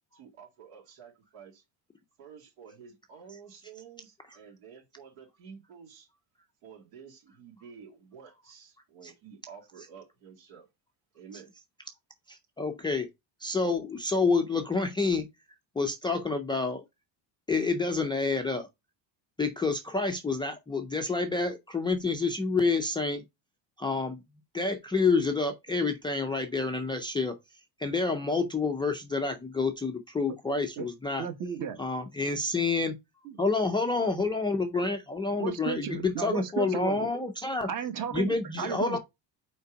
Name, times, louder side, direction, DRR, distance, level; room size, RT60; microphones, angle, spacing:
voice 1, 0.1-1.6 2.2-6.1 6.6-10.7 11.1-11.5, right 7 dB, 85° right, 2.6 m, -50 dB
voice 2, 12.3-13.1 13.4-15.3 15.8-16.8 17.5-18.7 19.4-23.2 23.8-24.2 24.5-27.3 27.8-31.3 31.8-32.9 33.4-37.7 38.1-39.0, left 3 dB, 10° left, 0.3 m, -28 dB
voice 3, 31.2-31.8 33.2-33.4 35.4-37.1 37.7-39.0, right 8 dB, 40° right, 1.1 m, -34 dB
5.4 x 4.5 x 5.0 m
cardioid pair, 170°, 47 cm